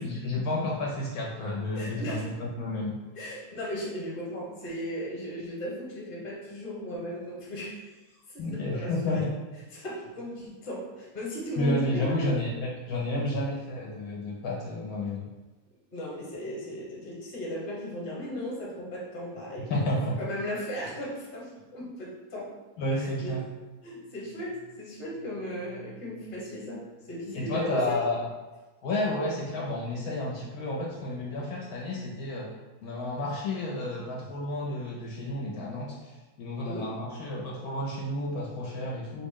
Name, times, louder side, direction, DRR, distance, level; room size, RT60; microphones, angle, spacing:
voice 1, 0.0-3.0 8.4-9.3 11.6-15.2 19.6-20.2 22.8-23.4 27.3-28.2 28.8-32.5 32.8-39.3, left 1 dB, 75° left, -2 dB, 1.0 m, -31 dB
voice 2, 1.7-2.3 3.2-7.9 8.3-9.2 9.7-12.3 15.9-19.7 20.2-22.5 23.0-23.4 23.8-28.0 36.6-36.9, equal, 40° left, -4 dB, 1.0 m, -36 dB
4.0 x 2.0 x 3.6 m, 1.2 s
omnidirectional pair, 1.6 m